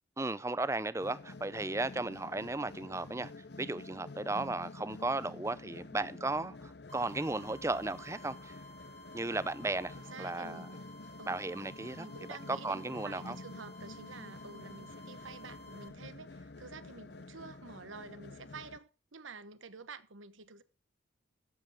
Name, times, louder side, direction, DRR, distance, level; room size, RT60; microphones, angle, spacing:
voice 1, 0.2-3.3 3.6-8.5 9.1-10.7 11.3-12.1 12.5-13.4, right 2 dB, 15° right, 0.5 m, -35 dB
sound 1, 1.0-18.8, left 3 dB, 55° left, 0.8 m, -49 dB
sound 2, 6.9-15.9, equal, 30° left, 2.3 m, -54 dB
voice 2, 9.9-10.9 11.2-11.4 12.0-20.6, right 4 dB, 85° right, 1.2 m, -49 dB
15.0 x 7.9 x 4.8 m
head